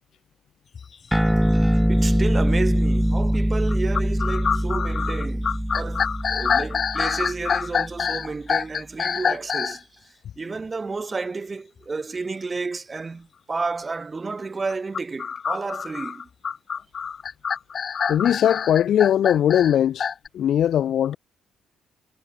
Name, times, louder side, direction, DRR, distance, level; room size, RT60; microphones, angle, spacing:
sound 1, 0.7-0.9 1.5-1.6 2.3-2.6 3.7-9.8 14.7-20.3, left 6 dB, 45° left, 2.1 m, -26 dB
sound 2, 1.1-7.9, equal, ahead, 2.2 m, -23 dB
voice 1, 1.9-16.3, right 4 dB, 30° right, 3.1 m, -31 dB
voice 2, 18.1-20.1 20.3-21.2, left 10 dB, 70° left, 0.7 m, -20 dB
cardioid pair, 90°, 0 cm